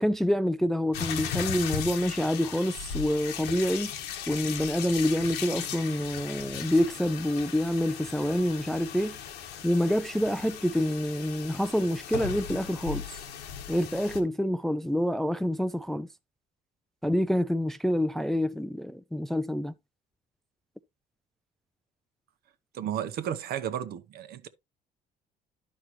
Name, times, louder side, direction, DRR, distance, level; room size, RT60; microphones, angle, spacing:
voice 1, 0.0-3.9 4.3-9.2 9.6-13.0 13.7-16.1 17.0-19.7, equal, ahead, 0.4 m, -27 dB
sound 1, 0.9-14.2, left 8 dB, 90° left, 1.4 m, -37 dB
voice 2, 22.7-24.5, right 10 dB, 65° right, 0.9 m, -33 dB
11.0 x 5.6 x 3.0 m
cardioid pair, 110°, 17 cm